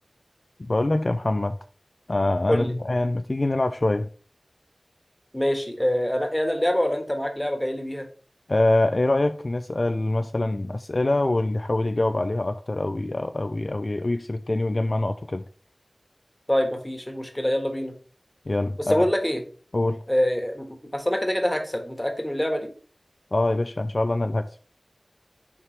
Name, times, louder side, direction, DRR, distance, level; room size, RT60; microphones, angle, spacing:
voice 1, 0.6-1.6 2.1-4.1 8.5-15.4 18.5-19.0 19.7-20.0 23.3-24.5, left 2 dB, 55° left, 0.3 m, -24 dB
voice 2, 5.3-8.0 16.5-17.9 18.8-19.4 20.1-22.7, equal, 15° left, 1.4 m, -25 dB
6.7 x 4.5 x 3.2 m
wide cardioid pair, 55°, 0 cm